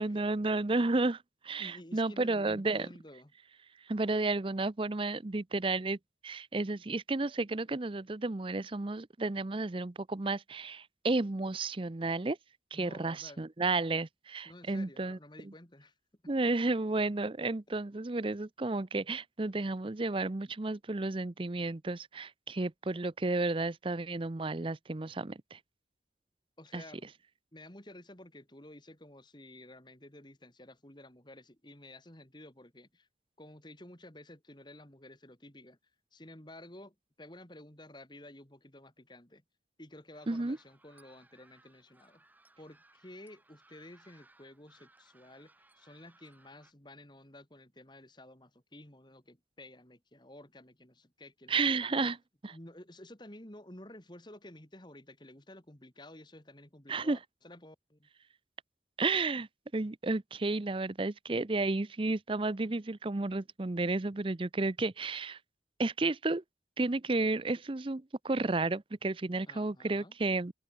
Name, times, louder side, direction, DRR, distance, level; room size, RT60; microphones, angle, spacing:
voice 1, 0.0-2.9 3.9-6.0 6.2-12.4 12.7-15.2 15.4-15.5 16.3-25.6 26.7-26.8 40.3-40.6 51.5-52.2 56.9-57.2 59.0-59.5 59.7-65.4 65.8-66.4 66.8-70.5, right 3 dB, 30° right, 0.6 m, -32 dB
voice 2, 1.6-3.3 12.7-13.4 14.4-15.9 26.6-27.1 27.5-33.1 33.4-35.8 36.1-39.4 39.8-42.2 42.6-52.1 52.5-58.1 69.5-70.1, left 1 dB, 25° left, 3.0 m, -52 dB
sound 1, 40.1-46.7, right 2 dB, 10° right, 5.8 m, -64 dB
open air
head